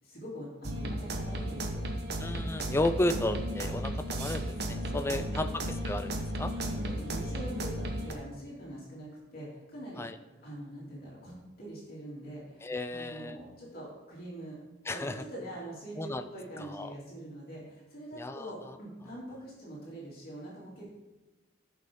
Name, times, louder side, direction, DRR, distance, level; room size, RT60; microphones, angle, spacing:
voice 1, 0.0-1.8 4.7-5.7 6.5-10.0 10.4-14.6 14.9-20.9, right 1 dB, 50° left, -6 dB, 3.1 m, -44 dB
sound 1, 0.6-8.1, right 1 dB, 55° right, 1.0 m, -34 dB
voice 2, 2.2-4.5 4.9-5.5 5.9-6.1 6.4-6.5 10.0-10.1 12.6-13.4 14.9-15.2 16.0-16.2 16.7-16.9 18.2-18.4, left 1 dB, 15° left, 9 dB, 0.3 m, -32 dB
14.5 x 5.6 x 3.8 m, 1.2 s
head